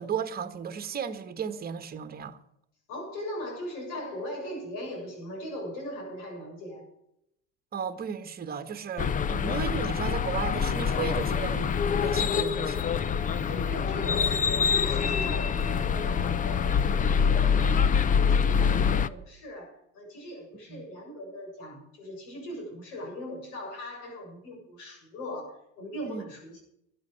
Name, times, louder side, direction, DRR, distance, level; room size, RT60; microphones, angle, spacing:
voice 1, 0.0-2.4 7.7-12.9 20.7-20.8 26.1-26.2, right 7 dB, 25° right, 1.4 m, -35 dB
voice 2, 2.9-6.8 13.5-26.6, equal, 70° left, 7.5 m, -39 dB
sound 1, 9.0-19.1, left 6 dB, 25° left, 0.6 m, -25 dB
13.0 x 9.3 x 7.7 m
supercardioid pair, 105°, 34 cm